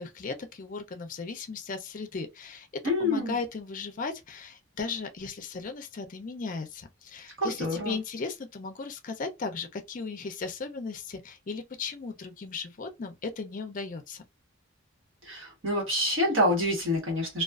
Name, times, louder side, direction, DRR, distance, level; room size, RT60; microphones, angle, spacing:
voice 1, 0.0-2.7 3.0-14.2, left 4 dB, 40° left, 0.4 m, -36 dB
voice 2, 2.8-3.4 7.4-8.0 15.2-17.4, left 1 dB, 75° right, 1.2 m, -27 dB
2.3 x 2.3 x 2.3 m
head